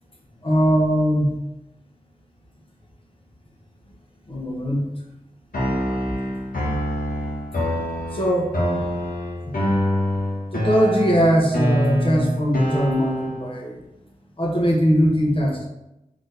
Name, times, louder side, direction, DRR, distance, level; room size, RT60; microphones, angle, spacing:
voice 1, 0.4-1.4 4.3-4.9 8.1-8.8 9.5-9.6 10.5-13.8 14.4-15.7, equal, 35° left, -2 dB, 1.1 m, -21 dB
sound 1, 5.5-13.5, equal, 70° left, 1.2 m, -25 dB
4.2 x 3.2 x 3.3 m, 0.92 s
wide cardioid pair, 50°, 15 cm